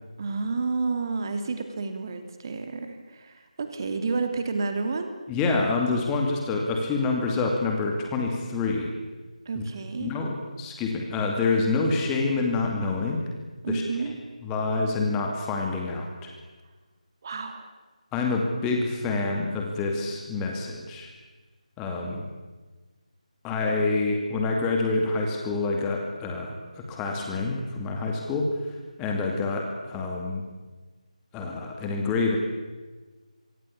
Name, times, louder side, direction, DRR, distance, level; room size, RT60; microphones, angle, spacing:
voice 1, 0.2-5.1 9.4-10.1 13.6-14.2 17.2-17.7, right 4 dB, 30° right, 7 dB, 2.8 m, -30 dB
voice 2, 5.3-8.9 9.6-9.7 10.0-13.3 13.7-13.8 14.4-16.3 18.1-21.1 21.8-22.2 23.4-28.5 29.0-30.4 31.3-32.4, left 3 dB, 10° left, 1 dB, 2.4 m, -27 dB
26.5 x 23.5 x 8.6 m, 1.3 s
figure-of-eight pair, 160°, 4 cm